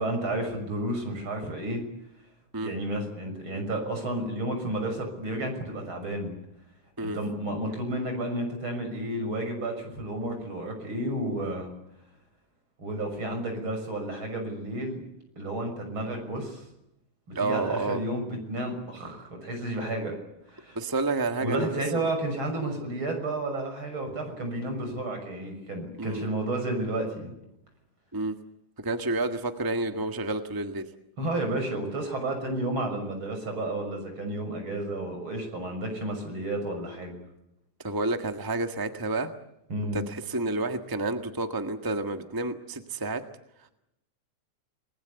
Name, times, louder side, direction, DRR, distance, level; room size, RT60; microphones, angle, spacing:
voice 1, 0.0-1.8 2.6-6.3 7.0-11.7 12.8-15.0 15.4-16.7 17.3-20.2 20.5-20.8 21.4-27.3 31.2-37.1 39.7-40.0, right 1 dB, 40° right, 4 dB, 7.1 m, -31 dB
voice 2, 17.3-18.0 20.7-22.1 26.0-26.2 28.1-28.4 28.8-30.9 37.8-39.3 39.9-43.2, right 2 dB, 15° right, 7 dB, 0.7 m, -30 dB
29.0 x 20.0 x 8.3 m, 0.84 s
omnidirectional pair, 3.5 m